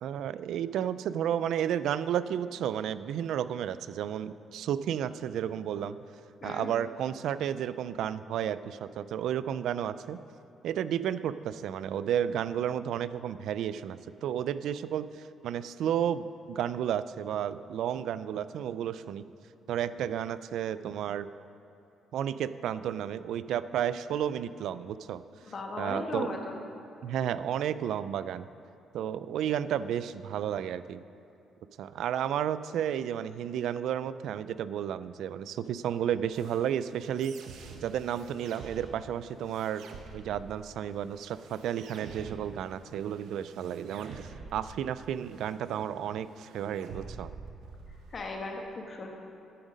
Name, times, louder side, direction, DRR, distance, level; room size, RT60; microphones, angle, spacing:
voice 1, 0.0-6.0 6.4-10.2 10.6-19.2 19.7-21.3 22.1-25.2 25.8-26.3 27.0-28.5 28.9-31.0 31.8-37.3 37.8-39.8 40.1-47.3, right 9 dB, 70° right, 14 dB, 0.3 m, -32 dB
voice 2, 25.4-26.6 48.1-49.1, left 3 dB, 30° left, 2 dB, 1.3 m, -37 dB
sound 1, 36.3-48.3, right 4 dB, 85° right, 0.9 m, -48 dB
10.0 x 8.9 x 5.2 m, 3.0 s
cardioid pair, 165°, 0 cm